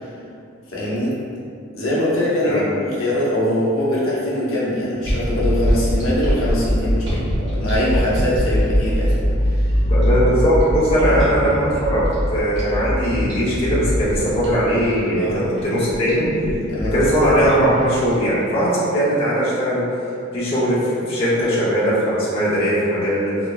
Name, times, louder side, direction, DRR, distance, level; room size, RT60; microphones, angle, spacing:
voice 1, 0.7-1.1 1.7-7.2 7.5-9.2 11.0-11.1 15.2-15.4 16.7-16.9, left 1 dB, 85° left, -7 dB, 0.7 m, -22 dB
sound 1, 5.0-18.1, equal, 60° right, 0.9 m, -22 dB
voice 2, 9.8-12.0 12.3-16.3 16.9-19.8 20.3-23.3, equal, 30° left, -9 dB, 0.6 m, -19 dB
3.8 x 2.0 x 2.2 m, 2.4 s
head